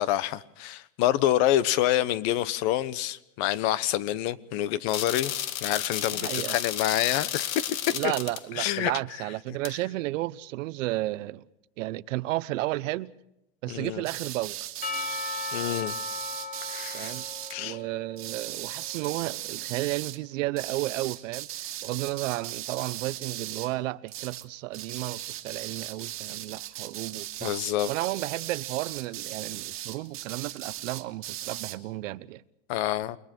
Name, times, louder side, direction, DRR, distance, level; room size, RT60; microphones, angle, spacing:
voice 1, 0.0-5.3 5.6-7.8 8.0-8.1 8.5-8.9 13.7-14.0 15.5-16.0 16.7-17.2 17.5-17.8 27.4-27.9 32.7-33.2, left 13 dB, 50° left, 1.2 m, -27 dB
sound 1, 4.9-8.4 9.6-9.7, left 11 dB, 85° left, 1.9 m, -32 dB
voice 2, 6.1-6.6 7.9-11.4 11.8-13.1 13.6-14.6 16.9-17.3 17.6-27.5 27.9-32.4, right 18 dB, 70° right, 1.0 m, -33 dB
sound 2, 14.0-17.6 18.2-20.2 20.6-23.8 24.1-24.5 24.7-31.8, right 13 dB, 35° right, 1.8 m, -38 dB
Percussion / Church bell, 14.8-19.2, left 4 dB, 20° left, 3.1 m, -37 dB
29.0 x 22.0 x 4.5 m
supercardioid pair, 145°, 40 cm